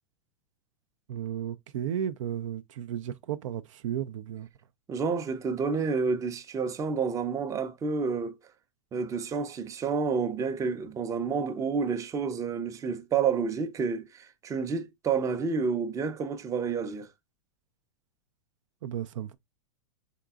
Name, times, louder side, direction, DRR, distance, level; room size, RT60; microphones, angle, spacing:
voice 1, 1.1-4.5 18.8-19.4, right 10 dB, 65° right, 0.4 m, -34 dB
voice 2, 4.9-8.3 8.9-17.1, right 5 dB, 20° right, 0.5 m, -29 dB
3.9 x 3.6 x 2.3 m
hypercardioid pair, 110°, 17 cm